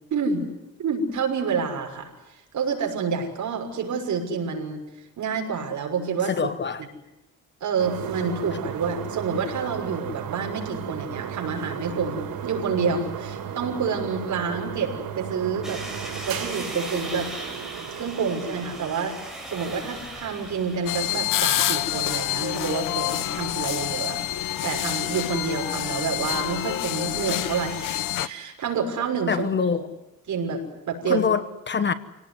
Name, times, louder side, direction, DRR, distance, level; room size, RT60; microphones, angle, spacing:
voice 1, 0.1-0.5 0.8-2.1 2.5-4.8 5.2-6.5 7.6-15.8 16.2-17.3 18.0-19.2 19.5-24.2 24.6-29.5 29.7-29.8 30.3-31.2, right 5 dB, 55° right, 6.3 m, -28 dB
voice 2, 6.2-6.8 29.3-29.9 31.1-31.9, left 6 dB, 30° left, 1.1 m, -25 dB
sound 1, 7.8-18.8, right 8 dB, 80° right, 4.4 m, -35 dB
sound 2, 15.6-26.8, right 1 dB, ahead, 6.5 m, -41 dB
sound 3, 20.9-28.3, left 13 dB, 70° left, 1.0 m, -27 dB
27.5 x 18.5 x 9.7 m
cardioid pair, 145°, 34 cm